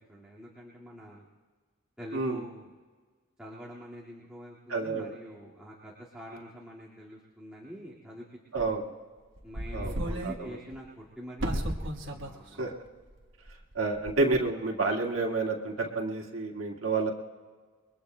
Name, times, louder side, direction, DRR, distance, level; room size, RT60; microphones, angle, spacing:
voice 1, 0.1-1.3 2.0-2.7 3.4-8.3 8.6-8.7 9.4-11.7 12.0-12.8, equal, 5° right, -7 dB, 1.9 m, -45 dB
voice 2, 4.7-5.1 8.5-8.8 9.7-10.0 10.2-10.5 12.6-12.7 13.7-17.1, right 3 dB, 85° right, -1 dB, 1.9 m, -29 dB
sound 1, 8.6-8.7 9.4-10.4 10.7-10.8 11.4-12.3 12.6-12.7 13.5-13.7 14.1-14.4, right 1 dB, 65° right, 1.2 m, -33 dB
29.0 x 22.0 x 2.2 m, 1.5 s
head